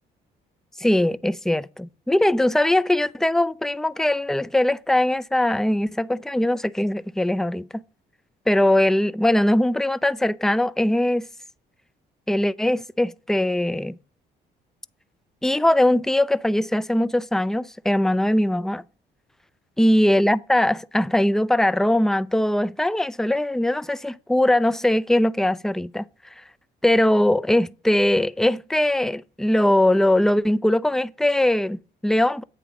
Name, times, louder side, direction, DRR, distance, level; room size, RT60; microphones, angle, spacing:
voice 1, 0.8-7.8 8.5-11.3 12.3-13.9 15.4-18.8 19.8-26.1 26.8-32.4, left 1 dB, ahead, 0.3 m, -21 dB
8.5 x 3.3 x 6.1 m
supercardioid pair, 65°, 19 cm